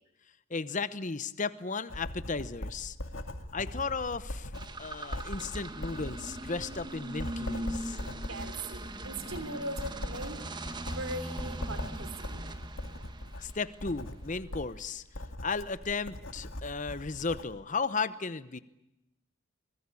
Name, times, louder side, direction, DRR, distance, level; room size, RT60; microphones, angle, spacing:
voice 1, 0.5-3.0 3.5-4.5 4.8-8.0 13.4-15.0 15.4-18.6, left 4 dB, 35° left, 14 dB, 0.9 m, -35 dB
Writing, 1.9-17.5, left 1 dB, 70° left, 2.3 m, -41 dB
sound 1, 4.5-14.1, right 1 dB, 20° right, 1.3 m, -41 dB
voice 2, 8.3-10.4 10.9-12.5, right 2 dB, 80° right, 10 dB, 3.2 m, -40 dB
25.0 x 20.5 x 8.5 m, 0.89 s
head